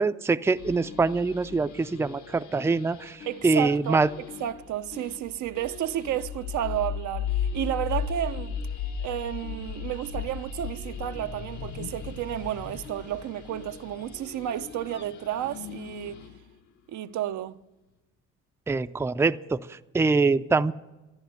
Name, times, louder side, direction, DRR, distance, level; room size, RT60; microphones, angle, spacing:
voice 1, 0.0-4.1 18.7-20.7, right 3 dB, 10° right, 0.4 m, -24 dB
sound 1, 0.5-16.5, left 7 dB, 70° left, 1.6 m, -37 dB
voice 2, 3.2-4.0 4.4-8.6 9.0-16.2 16.9-17.6, right 12 dB, 75° right, 0.6 m, -31 dB
sound 2, 10.5-16.4, left 8 dB, 40° left, 0.7 m, -46 dB
13.0 x 11.0 x 9.2 m
cardioid pair, 90°, 30 cm